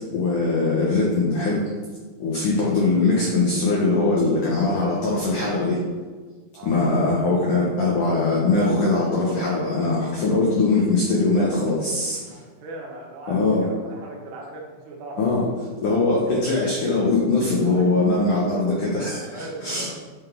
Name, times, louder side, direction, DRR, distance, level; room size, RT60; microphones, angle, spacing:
voice 1, 0.1-1.6 2.2-5.8 6.6-12.2 13.3-13.7 15.2-15.4 15.8-19.9, left 3 dB, 90° left, -4 dB, 1.8 m, -21 dB
voice 2, 6.5-7.2 12.3-15.5 17.6-17.9 19.2-19.9, right 2 dB, 85° right, -2 dB, 4.0 m, -39 dB
10.0 x 4.1 x 4.5 m, 1.4 s
omnidirectional pair, 5.6 m